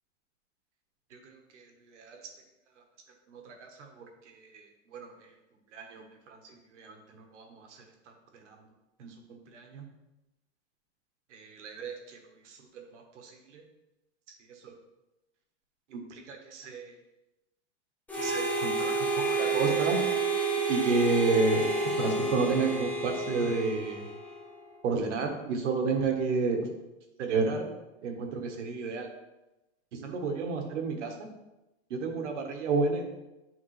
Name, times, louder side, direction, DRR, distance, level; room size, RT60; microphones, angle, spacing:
voice 1, 1.1-2.2 3.3-5.3 5.7-7.8 8.3-8.7 9.0-9.8 11.3-12.2 12.4-13.6 14.5-14.8 15.9-17.0 18.1-20.0 20.7-24.1 24.8-26.7 27.2-27.6 28.0-29.1 29.9-31.1 31.9-33.0, right 4 dB, 85° right, 3 dB, 1.4 m, -32 dB
Harmonica, 18.1-24.5, right 3 dB, 5° left, 0.4 m, -30 dB
8.8 x 3.6 x 3.2 m, 0.98 s
supercardioid pair, 150°, 35 cm